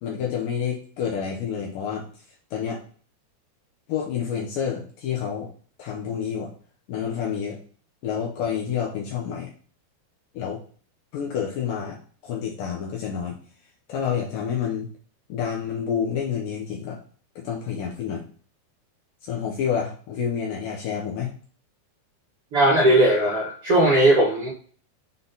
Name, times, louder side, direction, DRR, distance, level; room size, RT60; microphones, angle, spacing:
voice 1, 0.0-2.1 2.5-2.8 3.9-5.5 5.8-6.5 6.9-7.6 8.0-9.5 10.3-10.6 11.1-12.0 12.2-13.4 13.9-14.9 15.3-17.0 17.4-18.2 19.2-21.3, left 7 dB, 75° left, -1 dB, 2.1 m, -28 dB
voice 2, 22.5-24.5, right 1 dB, 80° right, -4 dB, 1.3 m, -18 dB
7.2 x 3.9 x 3.9 m, 0.44 s
omnidirectional pair, 4.9 m